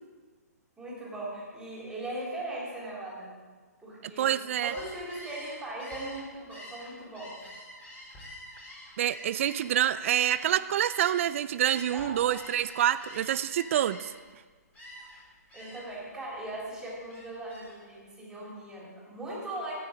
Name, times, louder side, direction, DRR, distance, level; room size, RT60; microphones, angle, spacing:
voice 1, 0.8-3.4 3.8-4.3 4.6-7.4 11.9-12.4 15.0-15.1 15.5-19.7, right 1 dB, 5° right, -6 dB, 3.7 m, -39 dB
voice 2, 4.2-4.7 9.0-14.1, right 11 dB, 50° right, 15 dB, 0.4 m, -27 dB
Gull seagull, 4.5-11.3 11.6-14.3 14.7-15.2 15.5-16.0 16.4-17.8, left 1 dB, 15° left, 3.6 m, -47 dB
13.0 x 9.5 x 5.1 m, 1.4 s
hypercardioid pair, 140°, 9 cm